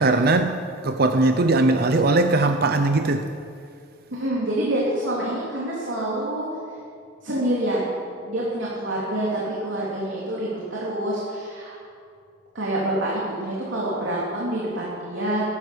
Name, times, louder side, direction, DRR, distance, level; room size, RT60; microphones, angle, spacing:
voice 1, 0.0-3.3, right 2 dB, 55° right, 0.7 m, -20 dB
voice 2, 4.2-6.5 7.2-7.9 8.3-11.7 12.5-15.4, right 1 dB, 90° right, 3.1 m, -26 dB
15.5 x 12.5 x 7.1 m
head